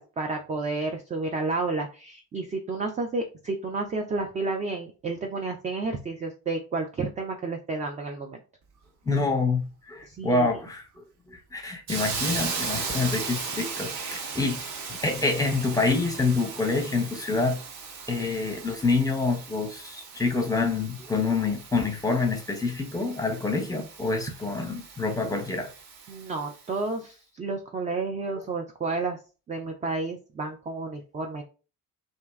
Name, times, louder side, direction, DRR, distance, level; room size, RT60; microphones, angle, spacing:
voice 1, 0.0-8.4 10.1-10.6 26.1-29.2 29.5-31.4, right 3 dB, 20° right, 0.4 m, -31 dB
voice 2, 9.1-14.6 14.9-17.6 18.1-25.7, left 3 dB, 10° left, 0.8 m, -27 dB
Hiss, 11.9-26.7, right 5 dB, 45° right, 0.8 m, -37 dB
2.6 x 2.1 x 3.1 m
figure-of-eight pair, 45°, 44 cm